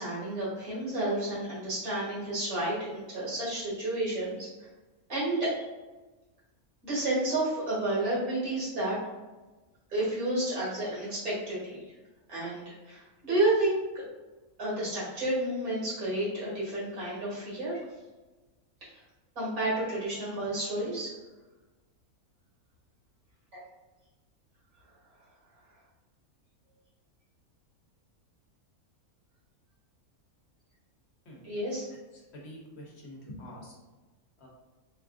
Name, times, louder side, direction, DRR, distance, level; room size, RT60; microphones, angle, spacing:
voice 1, 0.0-4.5 5.1-5.7 6.8-9.0 9.9-11.8 12.3-13.8 14.6-17.8 19.4-21.1 23.5-23.6 31.4-31.9, right 1 dB, 90° right, -9 dB, 2.1 m, -30 dB
voice 2, 32.3-33.7 34.4-34.5, equal, 55° left, -2 dB, 0.8 m, -46 dB
4.0 x 2.4 x 2.4 m, 1.2 s
omnidirectional pair, 1.5 m